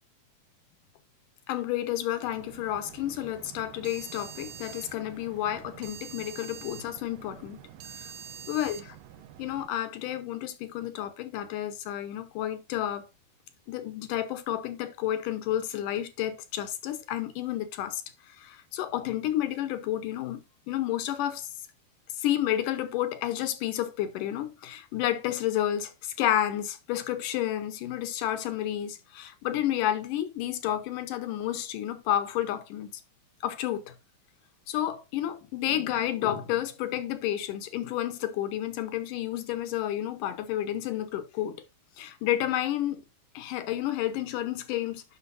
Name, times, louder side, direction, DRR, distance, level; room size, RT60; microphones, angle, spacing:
voice 1, 1.5-7.6 8.0-8.1 8.5-9.0 9.4-13.1 13.7-18.0 18.3-20.4 20.7-21.5 22.2-32.9 33.4-33.9 34.7-41.6 42.0-43.0 43.3-45.0, left 12 dB, 70° left, 2.2 m, -31 dB
sound 1, 2.4-9.7, right 9 dB, 80° right, 2.1 m, -46 dB
10.0 x 6.2 x 2.6 m
omnidirectional pair, 4.5 m